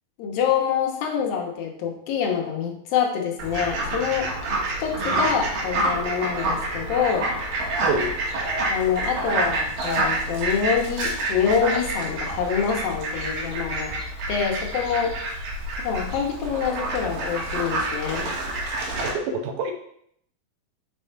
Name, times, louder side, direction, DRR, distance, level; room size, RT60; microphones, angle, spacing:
voice 1, 0.2-4.3 4.8-7.3 8.7-14.0 14.3-15.1 15.8-18.3, left 7 dB, 75° left, 2 dB, 2.8 m, -26 dB
Fowl, 3.4-19.1, right 2 dB, 75° right, 3.3 m, -28 dB
voice 2, 7.8-8.2 19.0-19.7, right 3 dB, 90° right, 5 dB, 2.8 m, -27 dB
6.5 x 5.6 x 4.5 m, 0.69 s
omnidirectional pair, 4.2 m